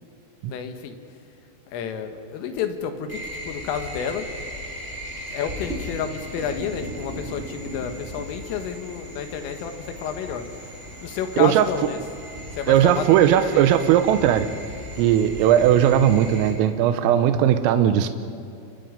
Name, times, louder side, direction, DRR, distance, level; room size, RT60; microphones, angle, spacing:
voice 1, 0.5-1.0 1.7-4.3 5.3-10.6 11.0-12.0 12.6-13.1 13.4-13.7, left 7 dB, 80° left, 7 dB, 4.2 m, -30 dB
sound 1, 3.1-16.5, equal, 15° right, 4.3 m, -37 dB
voice 2, 12.7-14.5 15.0-18.1, right 10 dB, 85° right, 9 dB, 3.6 m, -18 dB
29.5 x 26.0 x 5.3 m, 2.6 s
omnidirectional pair, 5.9 m